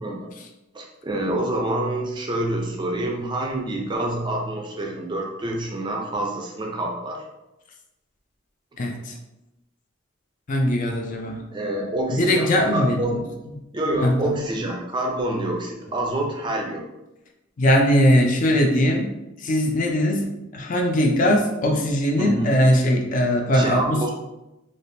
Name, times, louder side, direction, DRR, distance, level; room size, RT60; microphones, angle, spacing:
voice 1, 0.0-0.3 0.7-7.2 11.2-13.2 13.7-16.8 22.2-22.5 23.5-24.1, right 1 dB, 25° right, 0 dB, 0.4 m, -27 dB
voice 2, 8.8-9.1 10.5-11.4 12.1-13.2 13.9-14.4 17.6-19.1 19.4-20.3 20.5-24.0, equal, 40° left, 2 dB, 0.4 m, -20 dB
3.3 x 2.4 x 2.6 m, 0.96 s
head